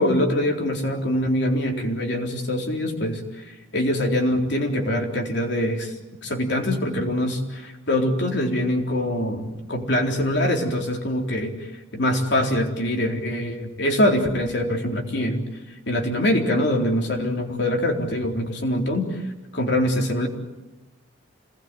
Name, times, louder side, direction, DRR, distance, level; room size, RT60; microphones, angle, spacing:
voice 1, 0.0-5.9 6.2-11.5 11.9-15.5 15.9-19.2 19.5-20.3, left 1 dB, 55° left, 2 dB, 4.0 m, -24 dB
27.5 x 20.0 x 9.3 m, 1.1 s
head